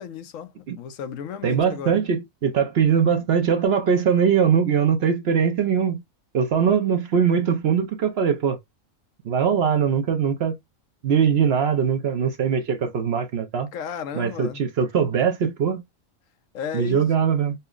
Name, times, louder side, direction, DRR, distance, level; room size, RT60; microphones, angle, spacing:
voice 1, 0.0-2.0 13.7-14.6 16.5-17.1, left 7 dB, 75° left, 0.9 m, -34 dB
voice 2, 1.4-6.0 6.3-8.6 9.2-10.6 11.0-13.7 14.1-15.8 16.7-17.5, right 7 dB, 60° right, 0.7 m, -21 dB
5.4 x 2.0 x 2.3 m
omnidirectional pair, 1.4 m